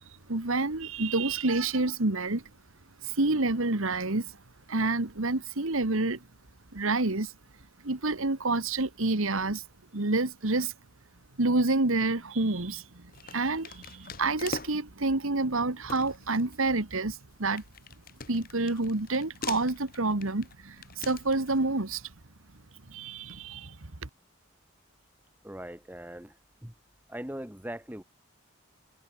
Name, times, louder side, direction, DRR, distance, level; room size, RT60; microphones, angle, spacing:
voice 1, 0.3-2.4 3.0-4.3 4.7-6.2 6.7-7.3 7.8-9.6 9.9-10.7 11.4-17.6 18.3-22.1 22.9-24.1, right 2 dB, 75° right, 1.7 m, -28 dB
sound 1, 12.0-12.4 13.1-15.0 15.5-15.6 15.9-21.6, left 4 dB, 40° left, 1.4 m, -43 dB
voice 2, 25.4-26.3 26.6-26.7 27.1-28.0, right 1 dB, 10° right, 1.3 m, -40 dB
head